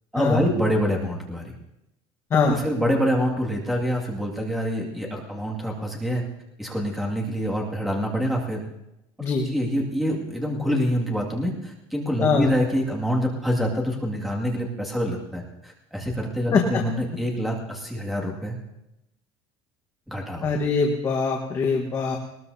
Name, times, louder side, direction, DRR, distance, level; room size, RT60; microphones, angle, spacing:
voice 1, 0.1-1.4 2.5-6.2 6.6-8.6 9.4-18.6 20.1-20.5, equal, ahead, -2 dB, 2.2 m, -26 dB
voice 2, 2.3-2.6 9.2-9.5 12.2-12.5 16.5-16.8 20.4-22.2, left 4 dB, 25° left, 1 dB, 1.4 m, -22 dB
20.5 x 20.0 x 2.8 m, 0.88 s
cardioid pair, 170°, 12 cm